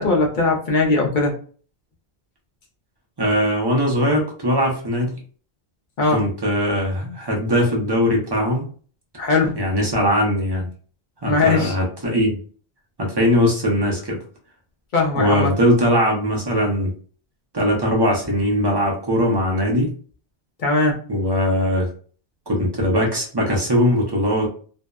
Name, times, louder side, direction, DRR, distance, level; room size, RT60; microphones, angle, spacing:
voice 1, 0.0-1.3 6.0-6.2 9.2-9.6 11.3-11.8 14.9-15.5 20.6-21.0, left 3 dB, 50° left, 0 dB, 0.7 m, -19 dB
voice 2, 3.2-5.1 6.1-8.7 9.5-10.7 11.2-12.4 13.0-14.2 15.1-16.9 17.5-19.9 21.1-21.9 22.5-24.5, equal, 25° right, -2 dB, 0.6 m, -20 dB
2.6 x 2.0 x 2.3 m, 0.42 s
omnidirectional pair, 1.2 m